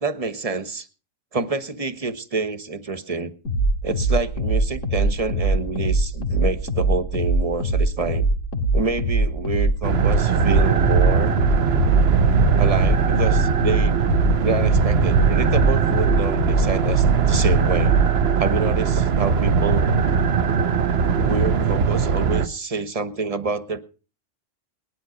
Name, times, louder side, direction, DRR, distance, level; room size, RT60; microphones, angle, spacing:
voice 1, 0.0-0.9 1.3-3.3 3.8-8.3 8.7-11.4 12.6-13.9 14.4-18.0 18.4-19.9 21.2-23.8, right 3 dB, 30° right, 11 dB, 1.3 m, -27 dB
sound 1, 3.5-18.2, right 2 dB, 75° left, 2.8 m, -23 dB
sound 2, 9.8-22.5, right 6 dB, 55° right, 1.1 m, -20 dB
20.0 x 11.5 x 5.1 m, 0.37 s
omnidirectional pair, 1.3 m